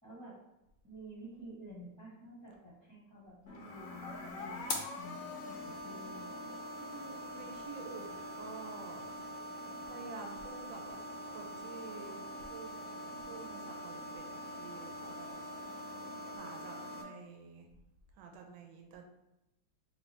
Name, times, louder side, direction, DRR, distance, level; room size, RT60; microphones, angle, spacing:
voice 1, 0.0-0.3 0.8-4.7 5.0-6.3, right 1 dB, 10° right, -7 dB, 1.0 m, -50 dB
sound 1, 3.5-17.0, left 1 dB, 70° left, 0.8 m, -43 dB
voice 2, 6.7-9.1 9.9-11.0 11.3-12.1 12.4-12.7 13.3-15.4 16.3-17.7 18.1-19.0, right 4 dB, 70° right, 2 dB, 1.2 m, -49 dB
3.3 x 2.6 x 4.2 m, 0.89 s
omnidirectional pair, 2.2 m